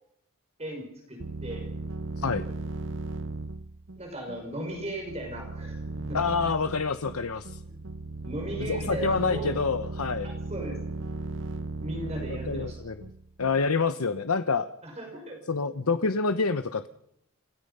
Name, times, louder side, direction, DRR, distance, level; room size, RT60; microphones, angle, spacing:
voice 1, 0.6-1.7 4.0-6.2 8.2-9.6 10.2-10.8 11.8-12.8 14.8-15.4, right 1 dB, 30° right, 1 dB, 5.5 m, -37 dB
sound 1, 1.2-13.7, right 3 dB, 60° right, 0.8 m, -37 dB
voice 2, 6.1-7.6 8.7-10.3 12.3-13.1 13.4-14.7 15.5-16.9, left 4 dB, 90° left, 10 dB, 0.9 m, -27 dB
28.5 x 17.0 x 5.5 m, 0.78 s
head